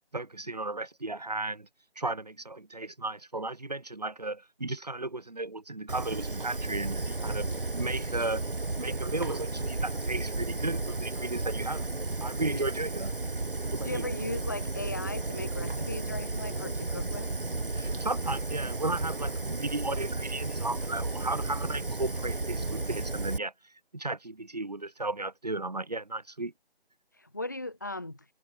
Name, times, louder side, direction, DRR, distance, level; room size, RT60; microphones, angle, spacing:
voice 1, 0.1-1.7 1.9-8.5 8.8-11.8 12.2-13.1 13.7-14.0 17.7-26.5, right 2 dB, 40° right, 2.9 m, -35 dB
Fire, 5.9-23.4, right 2 dB, 60° right, 2.7 m, -33 dB
voice 2, 13.8-17.3 27.2-28.2, left 2 dB, 20° left, 1.7 m, -37 dB
figure-of-eight pair, 180°, 31 cm